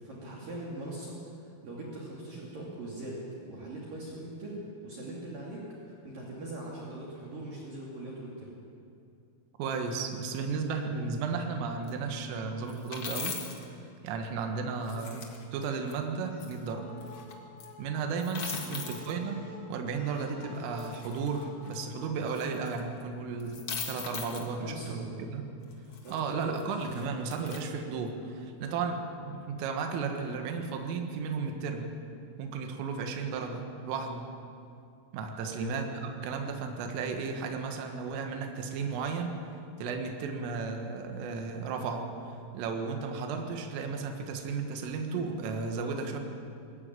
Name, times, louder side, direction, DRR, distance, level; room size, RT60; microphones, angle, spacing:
voice 1, 0.0-1.2 1.6-3.2 3.4-8.5 14.9-15.1 18.6-18.9 24.6-25.1 26.0-26.6 35.4-35.7, right 2 dB, 50° right, -4 dB, 3.8 m, -41 dB
voice 2, 9.6-13.4 14.0-15.2 15.5-16.9 17.8-25.5 26.1-31.9 32.4-34.3 35.1-39.3 39.8-42.1 42.5-46.2, right 5 dB, 75° right, 4 dB, 4.1 m, -34 dB
sound 1, 11.9-12.0 12.7-13.6 14.9-15.9 16.4-16.5 17.0-17.3 17.6-17.7 18.2-19.1 20.8-21.7 22.3-23.0 23.4-24.5 25.7-27.6, left 5 dB, 85° left, 1.3 m, -40 dB
sound 2, 16.3-23.0, left 1 dB, 65° left, 4.1 m, -51 dB
20.5 x 15.5 x 9.1 m, 2.4 s
omnidirectional pair, 6.0 m